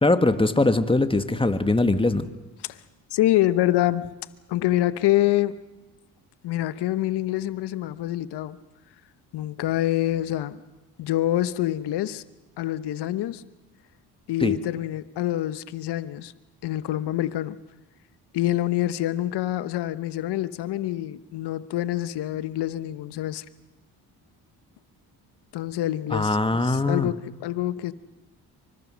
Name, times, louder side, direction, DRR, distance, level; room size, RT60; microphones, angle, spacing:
voice 1, 0.0-2.3 14.4-14.6 26.1-27.1, left 2 dB, 15° left, 1.6 m, -21 dB
voice 2, 3.1-4.1 4.5-5.6 6.4-8.6 9.3-10.6 11.0-12.2 12.6-13.4 14.3-16.3 16.6-17.6 18.3-23.4 25.5-27.9, left 14 dB, 75° left, 1.2 m, -26 dB
26.5 x 24.5 x 6.3 m
cardioid pair, 80°, 41 cm